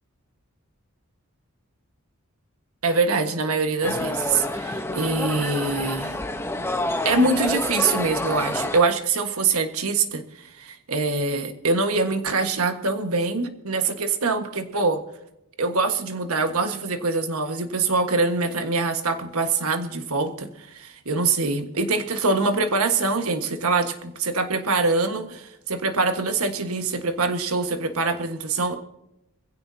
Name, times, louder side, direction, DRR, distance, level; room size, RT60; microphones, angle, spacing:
voice 1, 2.8-6.2 7.0-15.0 15.6-28.8, right 3 dB, 75° right, 7 dB, 1.5 m, -24 dB
sound 1, 3.8-8.8, left 1 dB, 10° left, 1.0 m, -28 dB
22.5 x 16.0 x 2.8 m, 0.86 s
head